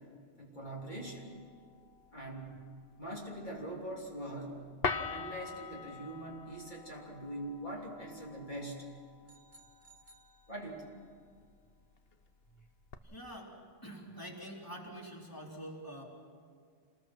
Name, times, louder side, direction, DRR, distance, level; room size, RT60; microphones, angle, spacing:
voice 1, 0.4-1.3 2.1-2.6 2.9-4.6 4.9-8.9 10.5-10.9 12.5-12.7, right 1 dB, 45° left, -3 dB, 3.5 m, -43 dB
sound 1, 0.7-12.9, left 5 dB, 65° left, 1.2 m, -45 dB
sound 2, 9.3-11.1, right 2 dB, 50° right, 1.6 m, -62 dB
voice 2, 13.0-13.5 13.8-16.0, equal, 20° left, -2 dB, 3.5 m, -46 dB
27.5 x 20.0 x 6.1 m, 2.1 s
omnidirectional pair, 1.1 m